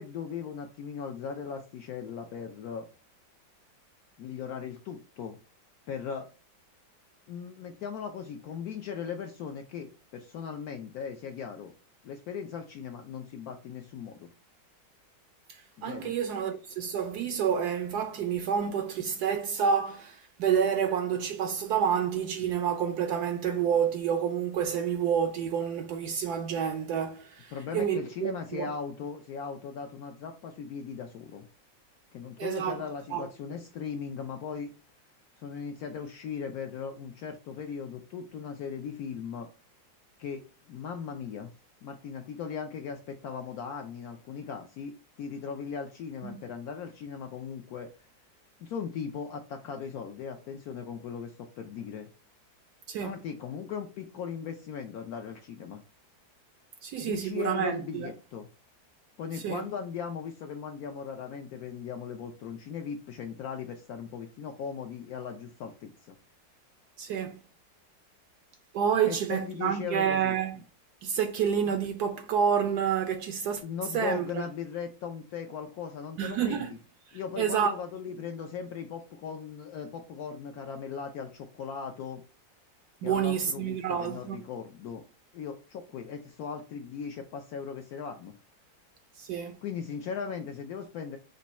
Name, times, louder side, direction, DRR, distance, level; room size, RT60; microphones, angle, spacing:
voice 1, 0.0-2.9 4.2-5.4 5.9-6.3 7.3-11.7 12.0-14.3 15.8-16.1 27.5-31.5 32.1-34.7 35.4-39.5 40.2-40.4 40.7-41.5 41.8-47.9 48.6-52.1 53.0-55.8 57.0-58.5 59.2-66.2 69.0-70.4 73.6-76.8 77.1-82.2 83.0-85.0 85.3-88.3 89.6-91.2, left 6 dB, 75° left, 0.8 m, -38 dB
voice 2, 15.8-28.7 32.4-32.8 33.1-33.3 46.2-46.4 52.9-53.1 56.8-58.1 59.4-59.6 67.0-67.4 68.7-70.6 71.0-73.6 73.9-74.3 76.2-76.7 77.4-77.7 83.0-84.4 89.2-89.6, right 8 dB, 70° right, 1.0 m, -29 dB
5.1 x 2.2 x 4.1 m
omnidirectional pair, 2.0 m